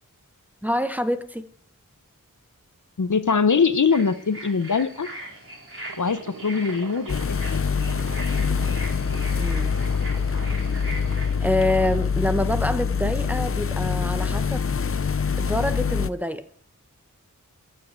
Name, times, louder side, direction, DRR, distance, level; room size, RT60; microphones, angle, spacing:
voice 1, 0.6-1.4 9.4-9.7 11.4-14.7 15.4-16.5, left 1 dB, 5° right, 0.9 m, -26 dB
voice 2, 3.0-5.1 6.0-7.2 7.5-7.6 8.0-8.1, left 5 dB, 65° left, 0.8 m, -22 dB
sound 1, 3.9-11.3, right 1 dB, 40° right, 4.6 m, -40 dB
sound 2, 5.8-12.2, right 6 dB, 70° right, 0.8 m, -42 dB
sound 3, 7.1-16.1, left 6 dB, 40° left, 0.5 m, -25 dB
14.5 x 5.6 x 8.8 m
wide cardioid pair, 50°, 33 cm